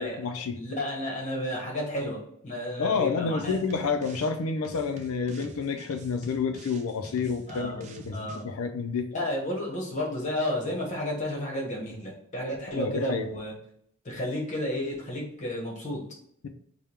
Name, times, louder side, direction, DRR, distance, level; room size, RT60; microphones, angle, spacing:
voice 1, 0.0-0.6 2.8-9.1 12.7-13.3, left 5 dB, 75° left, 7 dB, 0.4 m, -29 dB
voice 2, 0.5-3.5 7.5-7.8 8.1-8.4 9.1-13.5 14.0-16.0, left 1 dB, 35° left, -2 dB, 1.1 m, -32 dB
sound 1, 3.4-4.4 4.6-8.4, right 3 dB, 35° right, 0.4 m, -47 dB
3.5 x 2.2 x 4.3 m, 0.68 s
head